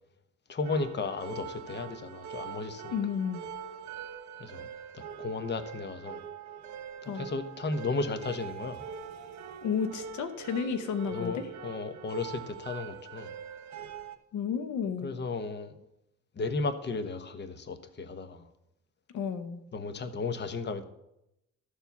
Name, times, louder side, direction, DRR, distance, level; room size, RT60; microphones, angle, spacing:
voice 1, 0.5-2.9 4.4-4.7 4.9-6.2 7.0-8.8 11.1-13.3 15.0-15.7 16.3-18.5 19.7-20.8, left 3 dB, 35° left, 10 dB, 1.0 m, -34 dB
sound 1, 0.6-14.2, right 7 dB, 65° right, 1.1 m, -43 dB
voice 2, 2.9-3.4 7.1-7.3 9.6-11.5 14.3-15.1 19.1-19.6, left 6 dB, 75° left, 9 dB, 0.9 m, -32 dB
13.0 x 4.6 x 7.0 m, 0.85 s
cardioid pair, 90°, 30 cm